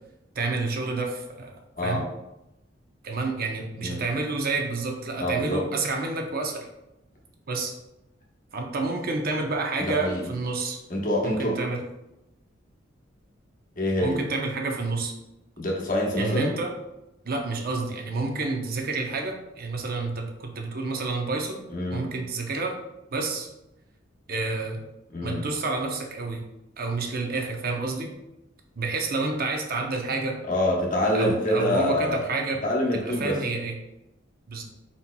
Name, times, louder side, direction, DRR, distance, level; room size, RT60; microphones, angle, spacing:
voice 1, 0.4-1.5 1.8-2.0 3.0-6.7 7.5-7.7 8.5-10.8 11.2-11.8 14.0-15.1 16.2-16.7 17.2-21.6 21.9-22.7 23.1-23.5 24.3-24.8 25.2-26.4 26.8-28.1 28.8-30.4 31.1-32.6 32.9-33.7 34.5-34.6, right 3 dB, 50° right, 2 dB, 0.6 m, -29 dB
voice 2, 5.2-5.6 9.8-10.2 10.9-11.6 13.8-14.2 15.6-16.5 21.7-22.1 25.1-25.4 30.5-32.2 32.6-33.4, left 1 dB, 45° left, -2 dB, 1.0 m, -26 dB
4.3 x 4.1 x 2.2 m, 0.90 s
head